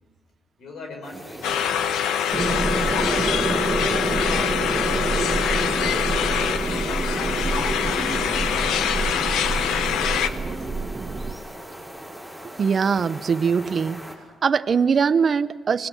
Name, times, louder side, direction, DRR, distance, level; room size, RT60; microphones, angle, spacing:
voice 1, 0.6-1.6 2.4-3.6 6.4-9.0 9.3-11.0, left 2 dB, 70° left, 3 dB, 5.3 m, -42 dB
sound 1, 1.0-14.2, equal, 5° left, 6.7 m, -40 dB
sound 2, 1.4-10.3, left 9 dB, 85° left, 1.1 m, -24 dB
sound 3, 2.3-11.3, right 3 dB, 25° right, 2.0 m, -27 dB
voice 2, 12.6-14.0 14.4-15.9, right 6 dB, 45° right, 12 dB, 0.7 m, -21 dB
24.5 x 19.5 x 7.2 m, 1.4 s
cardioid pair, 90°, 0 cm